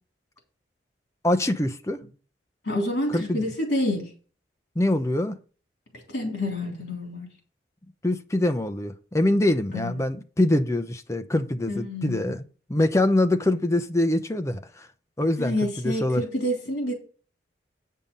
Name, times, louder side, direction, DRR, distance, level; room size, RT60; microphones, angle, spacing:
voice 1, 1.2-2.0 3.1-3.5 4.8-5.4 8.0-12.4 12.7-14.9 15.2-15.5 15.8-16.2, left 1 dB, 15° left, 0.6 m, -24 dB
voice 2, 2.6-4.1 6.1-7.3 9.7-10.1 11.7-12.3 15.4-16.9, left 1 dB, 60° left, 3.4 m, -28 dB
8.8 x 5.5 x 5.5 m
head